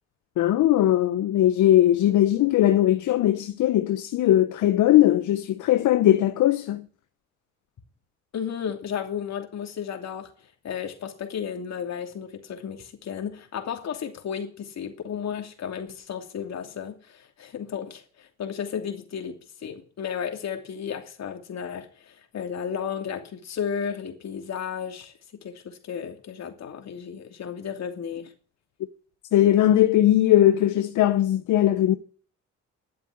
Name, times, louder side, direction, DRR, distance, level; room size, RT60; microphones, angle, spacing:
voice 1, 0.4-6.9 29.3-31.9, left 13 dB, 80° left, 0.9 m, -19 dB
voice 2, 8.3-10.3 10.6-28.3, left 7 dB, 60° left, 2.8 m, -33 dB
11.5 x 7.6 x 9.5 m
cardioid pair, 90°, 30 cm